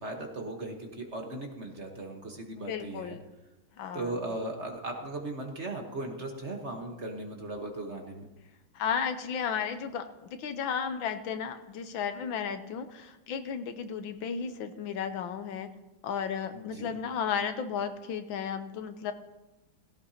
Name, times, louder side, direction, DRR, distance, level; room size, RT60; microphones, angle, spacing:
voice 1, 0.0-3.2 3.9-8.3 16.5-17.0, right 2 dB, 40° right, 2 dB, 1.4 m, -37 dB
voice 2, 2.6-3.2 3.8-4.2 8.7-15.7 16.0-19.1, left 7 dB, 75° left, 9 dB, 1.5 m, -34 dB
17.0 x 16.0 x 2.8 m, 1.1 s
omnidirectional pair, 2.2 m